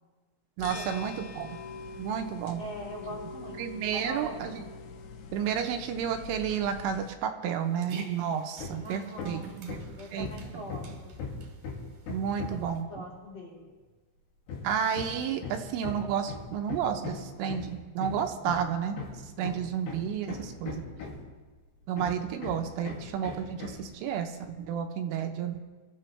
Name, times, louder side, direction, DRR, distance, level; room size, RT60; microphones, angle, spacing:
sound 1, 0.6-7.1, left 4 dB, 75° left, 3.4 m, -43 dB
voice 1, 0.6-1.6 2.0-2.6 3.6-4.7 5.3-9.9 10.1-10.6 12.1-13.0 14.6-20.8 21.9-25.6, right 8 dB, 80° right, 5 dB, 3.3 m, -31 dB
voice 2, 2.6-3.5 3.9-4.4 8.8-9.5 10.0-10.9 12.3-12.6 12.9-13.6, equal, 35° left, -5 dB, 3.7 m, -41 dB
Dog, 7.5-12.8, right 3 dB, 50° right, 2.8 m, -48 dB
Hammer, 8.6-8.9 9.2-12.8 14.5-21.4 22.0-23.9, left 4 dB, 60° left, 4.1 m, -39 dB
24.5 x 13.5 x 3.3 m, 1.3 s
omnidirectional pair, 5.8 m